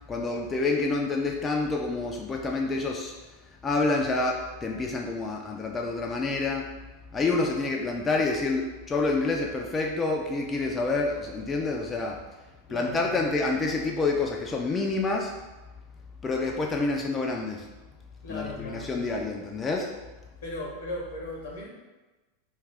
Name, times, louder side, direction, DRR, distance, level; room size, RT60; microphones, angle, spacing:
voice 1, 0.1-3.2 3.6-6.7 7.1-12.2 12.7-15.3 16.2-17.7 18.3-19.9, left 3 dB, 20° left, 0 dB, 0.3 m, -28 dB
voice 2, 12.7-13.1 18.2-18.9 20.4-21.7, left 2 dB, 70° left, -3 dB, 0.8 m, -36 dB
2.3 x 2.3 x 3.3 m, 1.1 s
hypercardioid pair, 90°, 0 cm